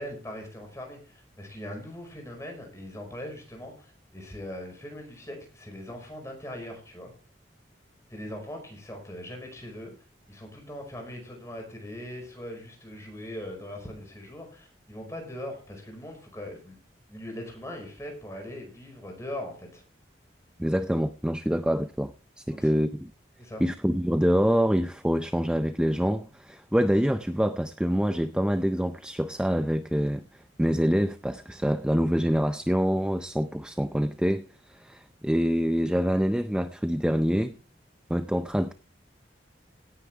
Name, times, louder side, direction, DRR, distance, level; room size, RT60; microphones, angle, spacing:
voice 1, 0.0-7.1 8.1-9.9 10.3-16.8 17.1-19.8 22.5-22.8 23.4-23.6, left 1 dB, 15° left, 2 dB, 5.1 m, -40 dB
voice 2, 20.6-23.1 23.6-30.2 30.6-37.5 38.1-38.7, equal, 5° right, 10 dB, 0.5 m, -26 dB
17.5 x 9.7 x 3.4 m, 0.39 s
head